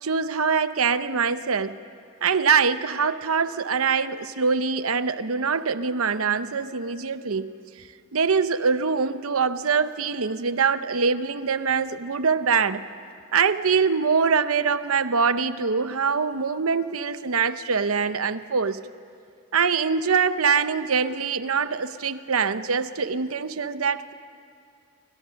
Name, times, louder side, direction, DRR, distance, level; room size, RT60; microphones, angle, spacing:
voice 1, 0.0-1.8 2.2-7.5 8.1-12.8 13.3-18.8 19.5-24.1, right 5 dB, 90° right, 0.9 m, -23 dB
28.5 x 24.5 x 6.4 m
head